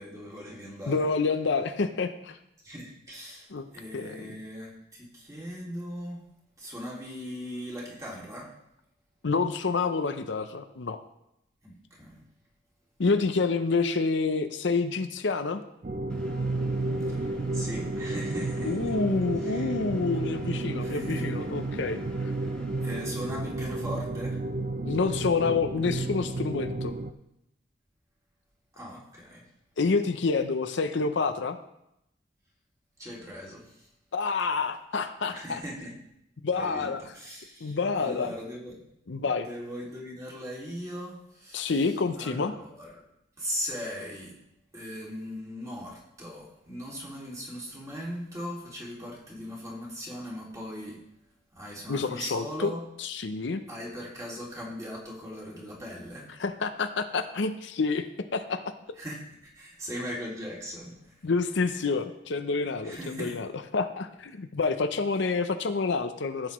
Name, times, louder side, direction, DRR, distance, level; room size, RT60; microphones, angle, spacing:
voice 1, 0.0-1.1 2.6-3.5 3.7-6.2 6.6-8.5 11.6-12.2 17.1-17.3 17.5-18.9 19.4-19.7 20.8-21.2 22.8-24.4 28.7-29.4 33.0-33.9 35.3-35.9 36.5-38.8 39.2-41.9 42.2-43.0 43.4-44.4 44.7-51.0 51.6-52.8 53.7-56.3 59.0-61.2 62.8-63.4, equal, 15° right, -4 dB, 2.4 m, -39 dB
voice 2, 0.9-2.4 3.5-3.6 3.9-4.3 9.2-11.0 13.0-15.6 18.6-22.0 24.8-26.9 29.8-31.6 34.1-35.6 36.4-37.0 37.6-38.3 39.1-39.5 41.5-42.5 51.9-52.7 53.0-53.6 56.4-58.7 61.2-66.5, left 4 dB, 65° left, 9 dB, 0.6 m, -28 dB
sound 1, 15.8-27.1, right 2 dB, 40° right, 0.5 m, -32 dB
Engine, 16.1-23.0, equal, 5° left, 1.4 m, -50 dB
15.0 x 8.0 x 3.1 m, 0.82 s
head